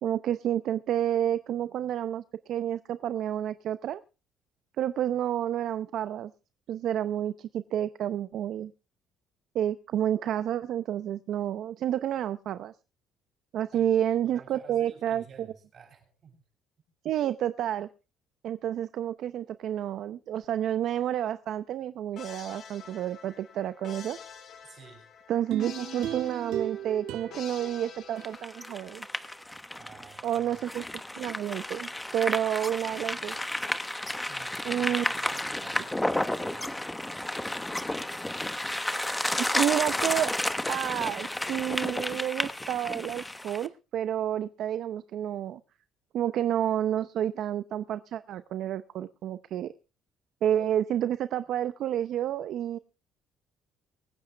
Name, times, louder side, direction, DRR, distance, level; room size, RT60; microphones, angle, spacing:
voice 1, 0.0-4.0 4.8-6.3 6.7-8.7 9.5-12.7 13.5-15.2 17.0-17.9 18.4-24.2 25.3-29.1 30.2-30.8 31.2-33.4 34.6-35.0 39.5-40.3 40.7-45.6 46.1-49.7 50.4-52.8, right 11 dB, 60° right, 13 dB, 0.7 m, -30 dB
voice 2, 14.2-16.4 24.6-25.1 29.7-30.6 34.2-38.2, right 6 dB, 40° right, 3 dB, 7.5 m, -53 dB
sound 1, 22.2-29.0, left 7 dB, 55° left, 4.4 m, -47 dB
sound 2, 25.5-28.8 29.2-29.3, right 11 dB, 80° right, 1.9 m, -37 dB
sound 3, 28.2-43.7, left 1 dB, 5° left, 1.1 m, -32 dB
24.5 x 9.8 x 3.4 m, 0.32 s
cardioid pair, 130°, 0 cm